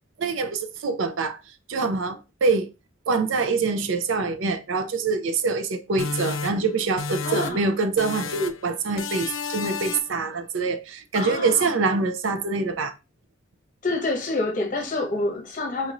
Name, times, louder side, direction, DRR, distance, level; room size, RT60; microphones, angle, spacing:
voice 1, 0.2-1.4 1.7-2.7 3.1-12.9, right 4 dB, 70° right, 0.5 m, -25 dB
sound 1, 6.0-7.7 8.0-8.7 9.0-10.2, left 5 dB, 80° left, 0.4 m, -32 dB
voice 2, 7.2-7.7 11.1-11.7 13.8-15.9, left 2 dB, 40° left, 1.0 m, -27 dB
4.1 x 3.0 x 2.5 m
head